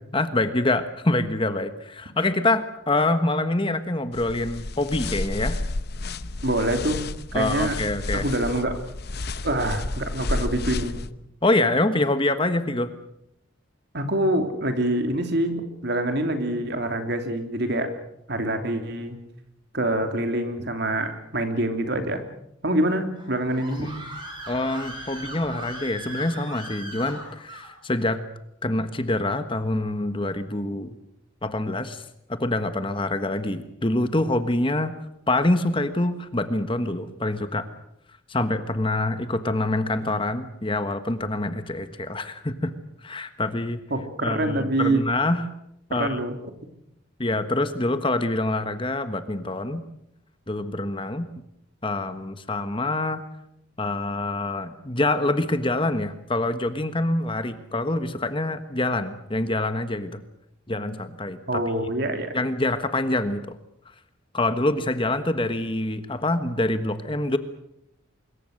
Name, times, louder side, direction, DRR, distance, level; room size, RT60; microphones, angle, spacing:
voice 1, 0.1-5.6 7.3-8.2 11.4-12.9 23.7-24.0 24.5-28.2 28.6-31.0 31.4-34.9 35.3-37.7 38.3-42.7 43.0-43.8 44.2-45.5 45.9-46.2 47.2-49.8 50.5-51.3 51.8-53.2 53.8-60.2 60.7-61.6 62.3-63.6 64.3-67.4, left 2 dB, 25° left, 10 dB, 1.3 m, -25 dB
sound 1, 4.1-11.1, left 2 dB, 50° left, 0.9 m, -31 dB
voice 2, 6.4-7.0 7.3-7.7 8.1-8.7 9.4-11.0 13.9-17.9 18.3-19.2 19.7-22.2 22.6-23.9 43.9-45.0 45.9-46.4 61.5-62.3, right 1 dB, 55° right, 6 dB, 3.1 m, -25 dB
Screaming, 23.2-27.7, right 1 dB, 20° right, 7.6 m, -39 dB
25.0 x 22.0 x 6.6 m, 0.79 s
head